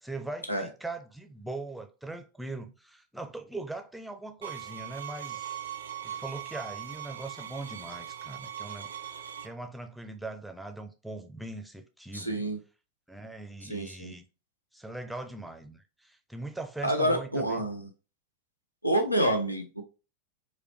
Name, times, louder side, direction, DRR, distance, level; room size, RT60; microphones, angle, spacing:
voice 1, 0.0-5.5 6.0-12.4 13.1-14.3 14.7-17.6, right 2 dB, ahead, 0.5 m, -41 dB
sound 1, 4.4-9.5, right 10 dB, 65° right, 0.4 m, -40 dB
voice 2, 12.1-12.6 13.6-14.1 16.8-17.9 18.8-19.8, right 1 dB, 90° left, 0.6 m, -28 dB
4.7 x 2.2 x 3.0 m
figure-of-eight pair, 90°, 0 cm